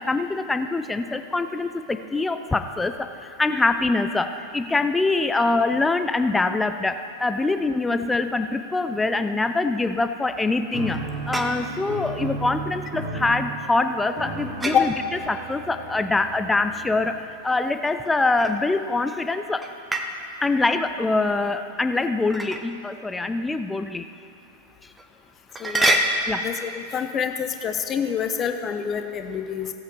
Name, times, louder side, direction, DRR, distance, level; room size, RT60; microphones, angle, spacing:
voice 1, 0.0-11.0 11.3-14.9 15.3-19.7 20.4-24.1 25.7-25.8 26.3-26.5, left 3 dB, 10° left, 9 dB, 0.4 m, -24 dB
sound 1, 10.7-11.9 14.6-14.9 17.9-18.9 19.6-20.2 22.3-22.7 23.5-23.6 24.1-24.2 25.0-25.1 25.5-26.4, right 1 dB, 10° right, 0.9 m, -26 dB
sound 2, 10.7-17.2, right 3 dB, 35° right, 2.5 m, -34 dB
voice 2, 25.6-26.0 26.4-29.7, left 8 dB, 25° left, 6 dB, 0.8 m, -26 dB
17.0 x 8.1 x 3.4 m, 2.7 s
figure-of-eight pair, 90°, 0 cm